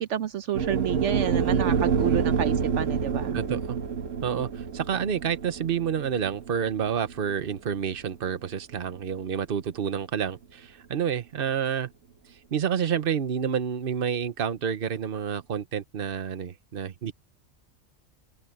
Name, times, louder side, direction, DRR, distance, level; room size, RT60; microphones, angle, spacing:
voice 1, 0.0-3.4, right 10 dB, 75° right, 1.0 m, -29 dB
sound 1, 0.5-8.8, right 6 dB, 90° right, 1.6 m, -28 dB
voice 2, 3.3-3.8 4.2-11.9 12.5-17.1, right 8 dB, 50° right, 1.1 m, -29 dB
omnidirectional pair, 1.3 m